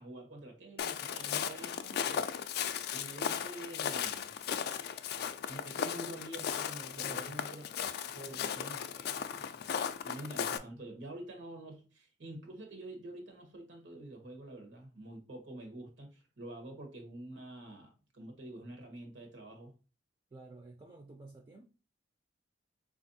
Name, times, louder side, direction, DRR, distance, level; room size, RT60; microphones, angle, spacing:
voice 1, 0.0-2.3 2.9-4.3 5.5-7.6 8.1-9.7 10.0-19.7, right 1 dB, 80° right, 0.9 m, -47 dB
Walk footsteps, 0.8-10.6, left 8 dB, 60° left, 0.3 m, -36 dB
voice 2, 6.9-7.4 20.3-21.6, right 2 dB, 25° right, 0.4 m, -50 dB
4.4 x 2.4 x 2.6 m
head